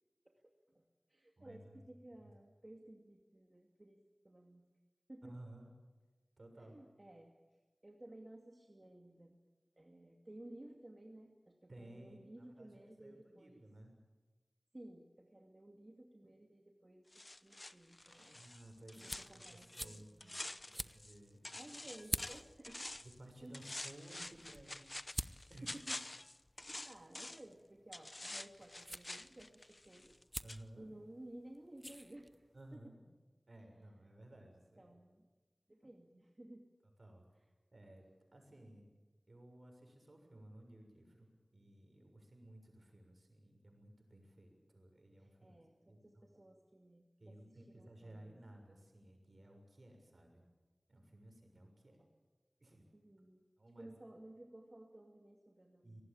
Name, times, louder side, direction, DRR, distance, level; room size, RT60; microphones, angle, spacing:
voice 1, 0.2-4.0 4.2-4.7 5.1-5.4 6.6-7.3 7.8-9.4 9.8-13.6 14.7-18.4 19.0-20.4 21.5-22.9 23.4-23.6 25.6-26.0 26.5-30.2 30.8-32.3 32.7-32.8 34.4-34.5 34.8-35.3 35.7-36.7 45.2-48.3 52.0-52.1 52.9-53.4 53.8-56.0, right 1 dB, 40° right, 2 dB, 2.4 m, -56 dB
voice 2, 1.4-1.8 2.2-2.3 5.2-5.7 6.4-6.8 11.7-13.9 18.3-20.4 20.7-21.8 23.0-25.7 30.4-30.9 32.5-33.0 33.5-34.9 37.0-37.2 37.7-38.0 38.3-38.9 39.3-45.6 45.9-46.0 47.2-50.4 50.9-52.0 52.6-52.8 53.6-53.9 55.8-56.0, right 1 dB, 65° right, 4 dB, 6.8 m, -57 dB
sound 1, 17.1-21.2 21.4-23.2 23.5-27.5 27.9-30.2 30.5-30.6, left 1 dB, 40° left, 0.8 m, -48 dB
sound 2, 18.0-32.8, equal, ahead, 0.8 m, -50 dB
24.5 x 19.0 x 8.9 m, 1.2 s
wide cardioid pair, 50°, 0 cm